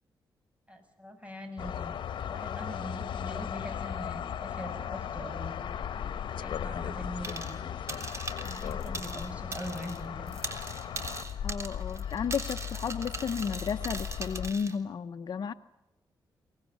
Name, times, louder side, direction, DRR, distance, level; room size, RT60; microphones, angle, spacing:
voice 1, 0.7-2.0 2.3-5.7 6.4-7.6 8.4-10.3, equal, 15° right, 6 dB, 7.1 m, -42 dB
sound 1, 1.6-14.5, left 9 dB, 75° left, 1.3 m, -37 dB
sound 2, 7.2-7.6 7.9-10.0 10.3-14.7, right 3 dB, 35° right, 3.4 m, -40 dB
voice 2, 11.4-15.5, left 6 dB, 55° left, 5 dB, 0.9 m, -33 dB
24.5 x 19.0 x 9.7 m, 1.0 s
cardioid pair, 90°, 8 cm